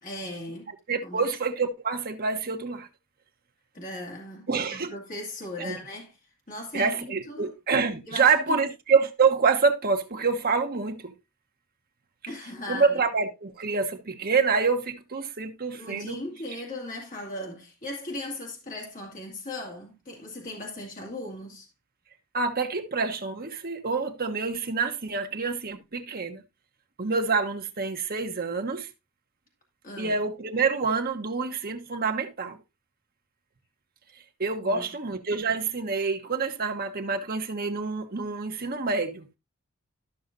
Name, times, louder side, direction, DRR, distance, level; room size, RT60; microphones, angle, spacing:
voice 1, 0.0-0.7 1.0-1.3 3.7-6.2 6.5-7.5 8.1-8.6 12.3-13.0 15.7-21.7 29.8-30.2 34.6-34.9, left 1 dB, 40° left, 2.3 m, -38 dB
voice 2, 0.9-2.9 4.5-4.9 5.6-5.8 6.7-11.1 12.7-16.2 22.3-26.4 27.0-28.9 30.0-32.6 34.4-39.3, right 4 dB, 45° right, 1.1 m, -27 dB
13.0 x 6.3 x 2.5 m
head